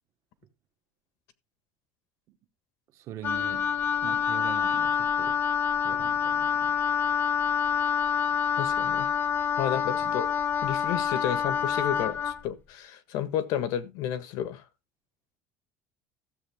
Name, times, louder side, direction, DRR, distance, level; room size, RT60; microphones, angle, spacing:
voice 1, 2.9-3.7 4.0-5.4 5.8-6.8 10.0-10.2, right 11 dB, 50° right, 1.5 m, -42 dB
Wind instrument woodwind instrument, 3.2-12.4, left 7 dB, 30° left, 1.1 m, -27 dB
voice 2, 8.6-9.1 9.6-10.3 10.6-14.6, left 10 dB, 65° left, 1.5 m, -31 dB
14.0 x 7.4 x 3.6 m
cardioid pair, 160°, 7 cm